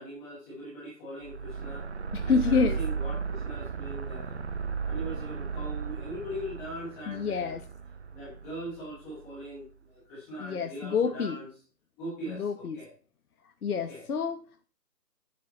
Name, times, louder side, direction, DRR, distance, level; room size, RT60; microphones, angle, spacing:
voice 1, 0.0-1.9 2.2-4.4 4.8-7.5 8.1-11.5 12.0-12.9 13.7-14.0, right 1 dB, 5° left, 0.9 m, -41 dB
sound 1, 1.2-9.6, right 5 dB, 40° right, 0.6 m, -35 dB
voice 2, 2.1-2.8 7.1-7.6 10.4-11.4 12.3-12.8 13.6-14.7, left 5 dB, 60° left, 1.1 m, -28 dB
9.8 x 7.6 x 4.0 m
hypercardioid pair, 160°, 50 cm